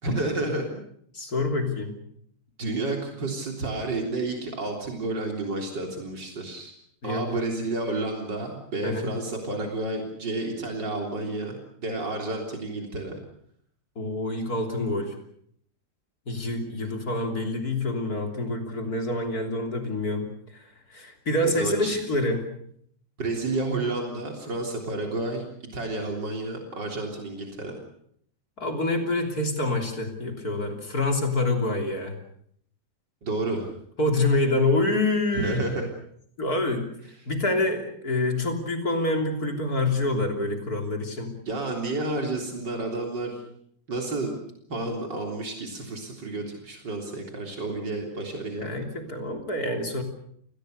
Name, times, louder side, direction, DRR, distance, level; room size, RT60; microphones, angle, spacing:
voice 1, 0.0-0.8 2.6-6.7 7.0-13.2 21.4-21.9 23.2-25.4 25.7-27.7 33.2-33.7 35.3-35.9 41.5-43.3 43.9-44.3 44.7-48.8, right 2 dB, 85° right, 2 dB, 4.2 m, -30 dB
voice 2, 1.1-1.9 7.0-7.4 8.8-9.1 14.0-15.2 16.3-22.4 28.6-32.2 34.0-35.6 36.4-36.8 37.3-41.4 48.6-50.0, left 2 dB, 55° left, 4 dB, 3.8 m, -27 dB
30.0 x 20.5 x 6.6 m, 0.68 s
omnidirectional pair, 1.9 m